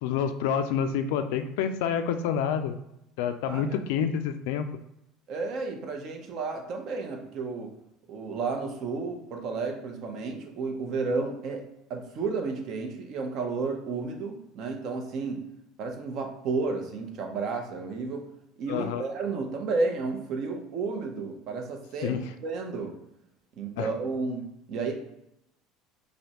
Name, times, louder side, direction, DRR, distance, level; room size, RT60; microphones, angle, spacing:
voice 1, 0.0-2.8 3.2-4.7 18.7-19.0 22.0-22.2 23.8-23.9, left 8 dB, 80° left, 8 dB, 0.3 m, -28 dB
voice 2, 3.5-3.8 5.3-7.7 8.1-11.6 11.9-15.4 15.8-18.3 18.6-22.2 22.4-22.9 23.6-24.9, right 4 dB, 45° right, 3 dB, 0.8 m, -32 dB
5.0 x 2.2 x 2.9 m, 0.83 s
cardioid pair, 145°, 0 cm